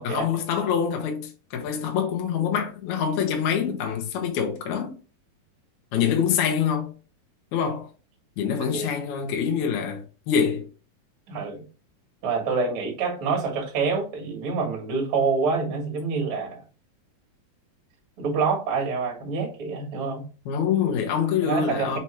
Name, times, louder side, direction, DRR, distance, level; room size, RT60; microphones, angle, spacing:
voice 1, 0.0-5.0 5.9-6.9 7.5-7.9 8.4-10.7 20.5-22.0, left 7 dB, 65° left, 2.1 m, -25 dB
voice 2, 8.5-8.9 11.3-11.6 12.2-16.6 18.2-20.3 21.4-22.0, right 4 dB, 45° right, 2.0 m, -27 dB
5.7 x 3.0 x 3.0 m
omnidirectional pair, 4.1 m